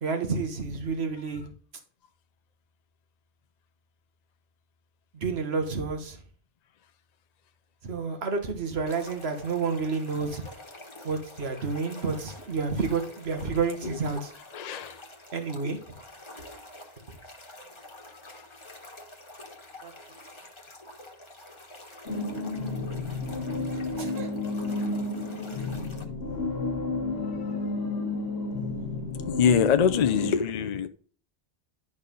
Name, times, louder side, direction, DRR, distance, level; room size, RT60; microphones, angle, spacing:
voice 1, 0.0-1.5 5.1-6.2 7.8-10.4 11.0-14.3 15.3-15.8 19.8-19.9 24.0-24.3, right 4 dB, 70° right, 1.6 m, -30 dB
sound 1, 8.9-26.0, left 1 dB, 25° left, 1.3 m, -47 dB
voice 2, 14.5-15.0 18.1-18.5 27.2-28.0 29.3-30.9, left 7 dB, 50° left, 0.5 m, -26 dB
sound 2, 22.1-30.3, left 3 dB, 75° left, 1.6 m, -31 dB
11.0 x 4.1 x 5.3 m
omnidirectional pair, 1.1 m